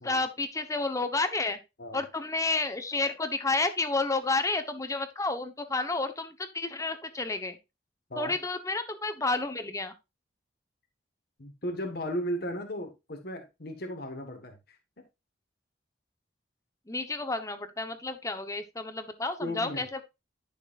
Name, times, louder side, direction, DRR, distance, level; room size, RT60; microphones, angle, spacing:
voice 1, 0.0-1.6 1.9-7.6 8.2-9.9 16.9-20.0, left 3 dB, 20° left, 9 dB, 1.1 m, -30 dB
voice 2, 11.4-14.8 19.4-19.8, equal, 60° left, 4 dB, 1.6 m, -35 dB
11.5 x 6.7 x 2.6 m, 0.24 s
head